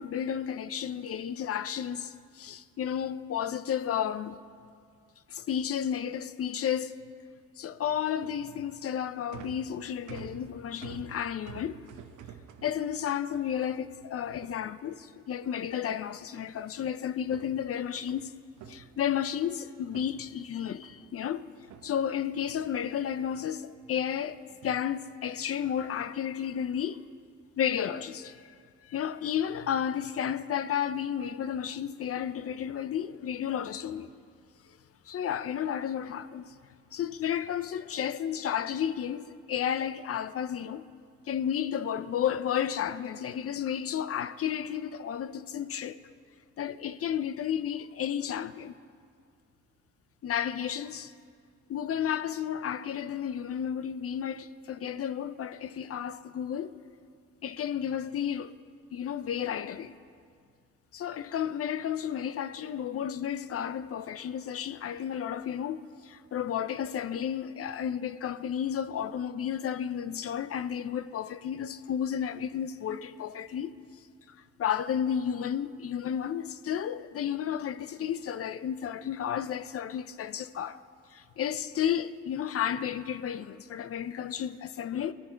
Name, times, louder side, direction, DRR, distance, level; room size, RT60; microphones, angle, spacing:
voice 1, 0.0-4.4 5.3-7.0 7.6-11.8 12.6-18.3 18.7-21.5 21.8-27.0 27.6-28.5 28.8-34.1 35.1-36.5 36.9-40.8 41.3-46.0 46.6-48.7 50.2-51.1 51.7-56.7 57.4-58.5 58.9-60.0 60.9-73.7 74.3-80.8 81.1-85.1, left 9 dB, 50° left, 0.6 m, -32 dB
sound 1, 7.7-15.2 16.4-16.9 17.2-19.6 19.9-21.2 21.7-23.3 23.7-24.2 24.5-24.9 25.6-26.0 26.5-26.8, right 8 dB, 80° right, 0.9 m, -51 dB
21.0 x 11.5 x 4.5 m
cardioid pair, 90°, 30 cm